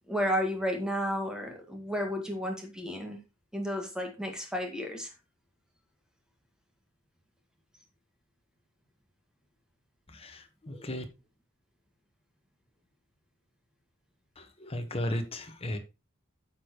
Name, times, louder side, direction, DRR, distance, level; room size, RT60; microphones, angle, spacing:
voice 1, 0.1-3.2 3.5-5.1, equal, 5° right, 2 dB, 1.9 m, -32 dB
voice 2, 10.1-11.0 14.4-15.8, left 1 dB, 30° left, 5 dB, 1.3 m, -35 dB
9.6 x 6.6 x 3.0 m, 0.26 s
head